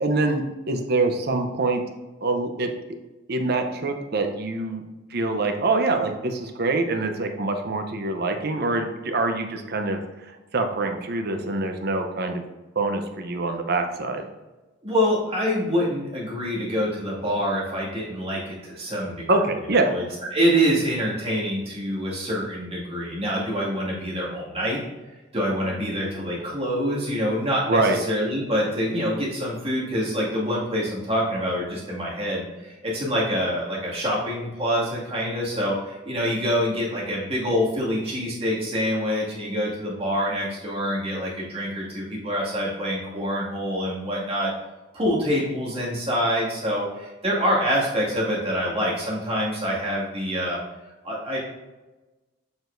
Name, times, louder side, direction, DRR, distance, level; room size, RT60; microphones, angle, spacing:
voice 1, 0.0-1.8 2.2-2.7 3.3-4.8 5.1-12.4 12.8-14.2 19.3-19.9 27.7-28.0, right 2 dB, 55° right, 5 dB, 0.8 m, -25 dB
voice 2, 14.8-19.3 19.9-20.0 20.3-24.8 25.3-44.5 44.9-50.6 51.0-51.4, equal, 30° right, -6 dB, 2.2 m, -26 dB
7.0 x 6.1 x 2.6 m, 1.1 s
head